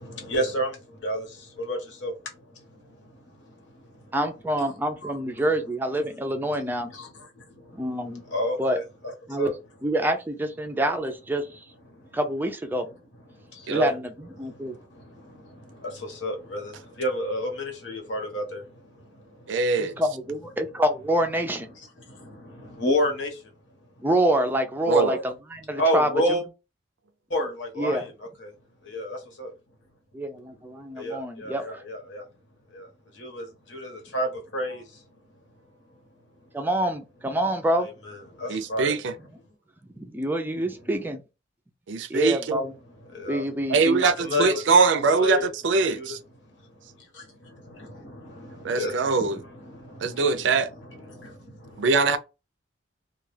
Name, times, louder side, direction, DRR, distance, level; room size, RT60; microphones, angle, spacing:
voice 1, 0.0-4.2 5.0-5.5 6.4-6.5 6.9-9.5 11.9-12.2 13.3-14.0 14.4-20.0 22.0-23.5 25.8-26.4 27.3-28.1 28.4-28.5 28.8-29.5 30.9-32.2 32.7-35.0 36.4-36.6 38.0-38.9 43.1-43.5 44.0-44.6 45.2-45.5 45.9-46.1 46.4-50.6 50.9-51.9, equal, 80° left, 1.0 m, -32 dB
voice 2, 4.1-6.9 7.7-8.2 8.6-8.8 9.3-9.5 9.8-11.6 12.1-12.9 13.7-14.8 19.8-21.7 24.0-26.1 27.8-28.1 30.1-31.8 36.5-37.9 40.0-41.2 42.1-42.7 43.3-44.0 44.3-44.4, right 1 dB, 10° right, 0.3 m, -26 dB
voice 3, 19.5-19.9 24.9-25.2 38.5-39.1 41.9-42.6 43.7-46.2 48.6-49.4 50.0-50.7 51.8-52.2, right 4 dB, 75° right, 0.4 m, -22 dB
2.3 x 2.3 x 3.2 m
head